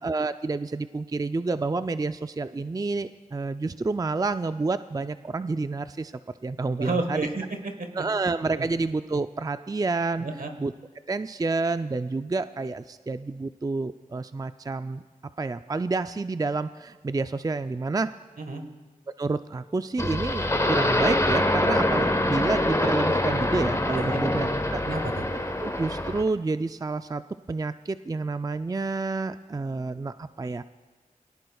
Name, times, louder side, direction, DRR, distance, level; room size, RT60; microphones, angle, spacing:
voice 1, 0.0-6.1 6.4-7.3 8.0-10.3 10.6-10.7 11.1-15.0 15.4-18.1 19.2-24.8 25.6-27.2 27.5-30.6, right 3 dB, 25° right, 11 dB, 0.4 m, -29 dB
voice 2, 6.8-7.9 8.5-8.7 10.2-10.5 18.4-18.6 23.9-24.2 24.8-25.2, right 3 dB, 75° right, 5 dB, 1.4 m, -31 dB
sound 1, 20.0-26.3, left 1 dB, 20° left, 1.1 m, -25 dB
21.5 x 17.5 x 2.3 m, 1.4 s
cardioid pair, 45°, 15 cm